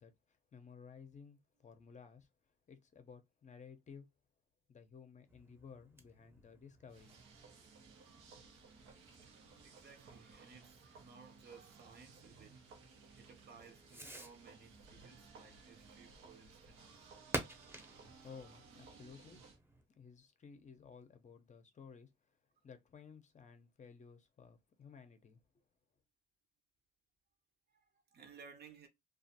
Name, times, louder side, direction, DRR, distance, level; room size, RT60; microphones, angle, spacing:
voice 1, 0.0-2.3 2.7-4.1 4.7-7.3 17.9-19.4 19.9-22.4 22.6-25.6, left 6 dB, 35° left, 0.6 m, -56 dB
Fireworks, 5.3-19.9, right 1 dB, 10° right, 0.7 m, -51 dB
sound 1, 6.9-19.6, right 4 dB, 90° right, 0.8 m, -60 dB
voice 2, 9.2-17.1 17.7-17.8 27.7-28.9, right 5 dB, 55° right, 0.8 m, -59 dB
2.4 x 2.3 x 2.7 m
cardioid pair, 90°, 20 cm